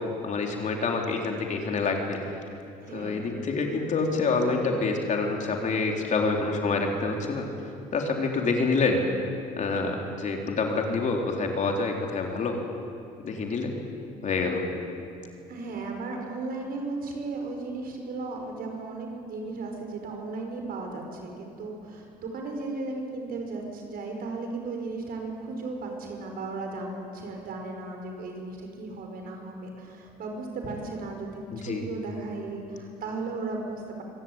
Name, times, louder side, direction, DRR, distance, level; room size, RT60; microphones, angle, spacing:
voice 1, 0.2-2.2 2.9-7.5 7.9-9.0 9.6-12.6 13.2-13.7 14.2-14.6 31.5-31.8, left 4 dB, 45° left, 2 dB, 3.7 m, -27 dB
voice 2, 2.8-3.3 15.5-34.0, right 3 dB, 60° right, 2 dB, 5.5 m, -35 dB
24.5 x 17.0 x 9.0 m, 2.6 s
cardioid pair, 110°, 17 cm